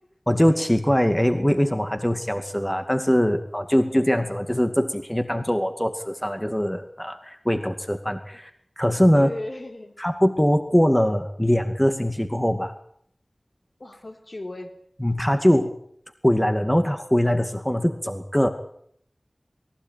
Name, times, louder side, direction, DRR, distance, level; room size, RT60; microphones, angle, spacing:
voice 1, 0.3-8.5 8.8-9.3 10.0-12.7 15.0-15.7 16.2-18.5, equal, 10° left, 6 dB, 2.3 m, -22 dB
voice 2, 9.1-10.0 13.8-14.7, left 1 dB, 60° left, 3 dB, 4.3 m, -36 dB
22.5 x 16.0 x 9.1 m, 0.66 s
wide cardioid pair, 45°, 0 cm